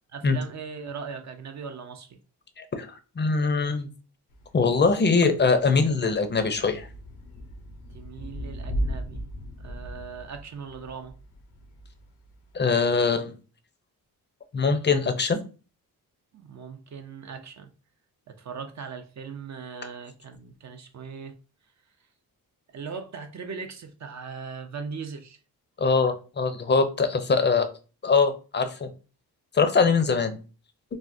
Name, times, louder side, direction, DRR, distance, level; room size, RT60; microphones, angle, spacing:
voice 1, 0.1-2.2 7.9-9.2 9.6-11.1 16.3-17.7 18.3-21.3 22.7-25.4 29.9-30.0, right 5 dB, 45° right, 0.5 m, -39 dB
voice 2, 2.6-2.9 3.2-3.9 4.5-6.9 12.5-13.3 14.5-15.4 25.8-27.7 28.0-28.9 29.5-30.4, left 4 dB, 30° left, 0.5 m, -22 dB
Thunder / Rain, 4.3-12.6, equal, 90° left, 0.8 m, -37 dB
3.4 x 2.1 x 2.6 m
cardioid pair, 70°, 39 cm